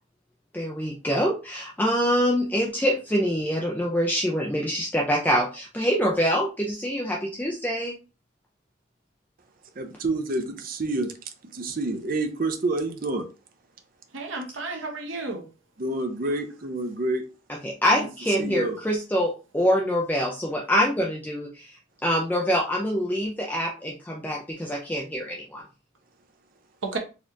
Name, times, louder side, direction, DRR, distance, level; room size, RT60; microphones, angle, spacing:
voice 1, 0.5-7.9 17.6-21.7 22.0-25.6, equal, 10° left, 0.5 m, -25 dB
voice 2, 9.8-11.2 11.4-13.3 15.8-17.3 18.4-18.8, right 2 dB, 45° right, 0.6 m, -28 dB
voice 3, 14.1-15.5 18.0-18.1 18.3-18.6 26.8-27.0, right 3 dB, 75° right, 0.9 m, -33 dB
4.1 x 2.8 x 2.5 m
head